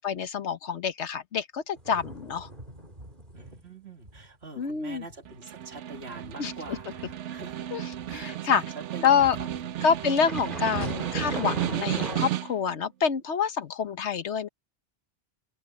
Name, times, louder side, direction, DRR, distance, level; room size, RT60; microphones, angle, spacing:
voice 1, 0.0-2.5 4.6-5.0 6.4-6.5 7.7-7.8 8.1-8.6 9.0-9.4 9.8-14.5, left 7 dB, 75° left, 1.3 m, -27 dB
sound 1, 1.8-3.7 4.0-4.3 4.6-8.2 9.2-12.3, right 1 dB, 45° right, 3.7 m, -40 dB
voice 2, 3.3-7.7 8.1-10.1, right 3 dB, 65° right, 2.4 m, -45 dB
Snare drum, 5.3-12.7, right 12 dB, 85° right, 1.0 m, -34 dB
open air
omnidirectional pair, 1.2 m